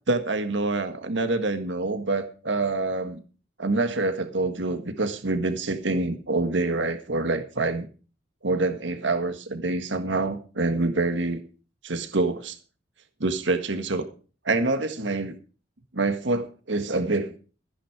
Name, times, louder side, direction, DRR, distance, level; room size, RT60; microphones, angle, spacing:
voice 1, 0.1-3.2 3.6-7.9 8.4-11.4 11.8-12.5 13.2-14.1 14.4-15.3 15.9-17.3, right 2 dB, 75° right, 8 dB, 1.7 m, -26 dB
14.5 x 10.0 x 4.9 m, 0.37 s
head